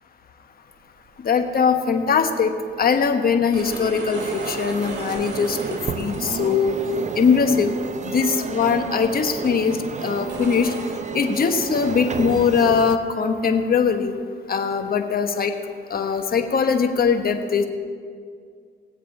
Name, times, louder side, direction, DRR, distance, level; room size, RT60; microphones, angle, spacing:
sound 1, 1.1-1.3 3.3-6.6 7.3-7.6 8.2-8.3 9.1-9.2 10.2-10.8, right 3 dB, 70° right, 3.1 m, -35 dB
voice 1, 1.2-2.5 2.8-6.8 7.2-7.7 8.1-9.8 10.0-10.7 11.1-14.2 14.5-15.5 15.9-17.6, left 6 dB, 50° left, 7 dB, 1.2 m, -21 dB
sound 2, 4.1-13.0, right 5 dB, 35° right, 0.7 m, -31 dB
19.0 x 7.9 x 5.4 m, 2.1 s
cardioid pair, 90°, 20 cm